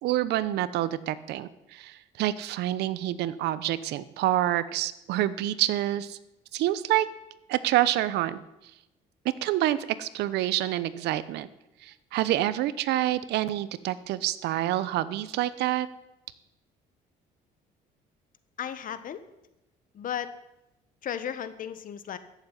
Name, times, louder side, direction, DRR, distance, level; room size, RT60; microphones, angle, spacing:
voice 1, 0.0-6.2 6.5-7.1 7.5-8.4 9.4-11.5 11.8-15.9, right 14 dB, 80° right, 16 dB, 0.9 m, -27 dB
voice 2, 18.6-19.3 19.9-20.3 21.0-22.2, left 9 dB, 55° left, 13 dB, 1.3 m, -34 dB
14.5 x 7.4 x 9.9 m, 0.92 s
cardioid pair, 110°, 17 cm